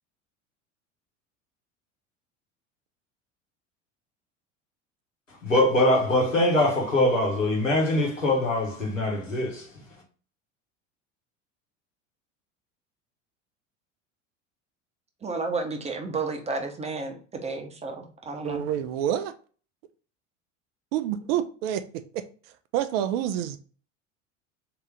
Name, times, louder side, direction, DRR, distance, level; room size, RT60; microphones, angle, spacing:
voice 1, 5.3-9.7, left 1 dB, 90° left, 1.3 m, -23 dB
voice 2, 15.2-18.6, right 3 dB, 15° right, 0.8 m, -32 dB
voice 3, 18.4-19.3 20.9-21.8 22.1-22.2 22.7-23.6, right 10 dB, 50° right, 0.5 m, -27 dB
3.6 x 2.9 x 3.4 m
figure-of-eight pair, 75°, 37 cm